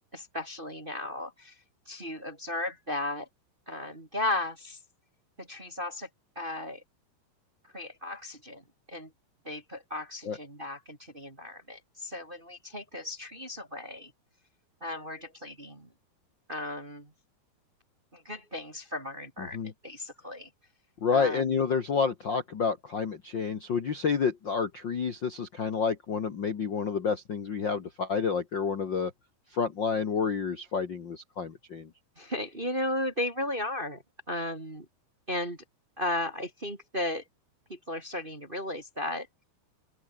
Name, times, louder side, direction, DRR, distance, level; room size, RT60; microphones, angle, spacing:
voice 1, 0.1-1.6 1.8-3.3 3.6-4.8 5.4-6.1 6.3-6.8 7.7-8.6 8.9-9.1 9.4-14.1 14.8-15.9 16.5-17.1 18.1-20.5 21.1-21.6 32.1-34.9 35.3-35.6 36.0-37.2 37.7-39.3, left 1 dB, 20° right, 1.4 m, -35 dB
voice 2, 19.4-19.7 21.0-29.1 29.5-31.9, left 5 dB, 75° left, 1.0 m, -29 dB
open air
omnidirectional pair, 4.9 m